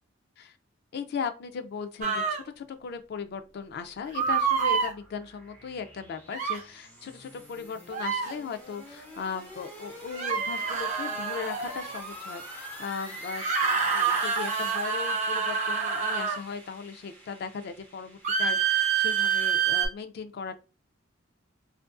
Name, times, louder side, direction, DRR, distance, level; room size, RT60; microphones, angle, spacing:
voice 1, 0.9-20.6, left 6 dB, 55° left, 0.3 m, -37 dB
sound 1, 2.0-2.4 4.1-4.9 6.3-6.6 7.9-8.3 10.1-12.0 13.3-16.4 18.2-19.9, right 6 dB, 40° right, 0.5 m, -27 dB
sound 2, 3.7-19.7, right 1 dB, 10° left, 0.6 m, -46 dB
2.5 x 2.4 x 2.2 m
head